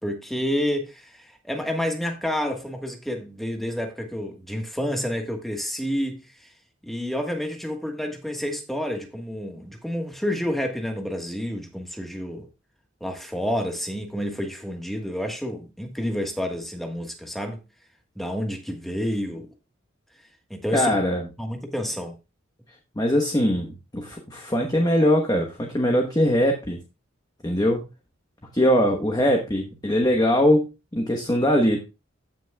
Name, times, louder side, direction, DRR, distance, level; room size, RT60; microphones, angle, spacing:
voice 1, 0.0-6.5 6.8-12.5 13.0-17.6 18.1-19.5 20.5-21.0 21.4-22.1, equal, ahead, 1.4 m, -29 dB
voice 2, 20.7-21.2 23.0-26.8 27.4-27.8 28.5-31.8, equal, 20° left, 1.1 m, -21 dB
15.5 x 6.1 x 2.3 m
head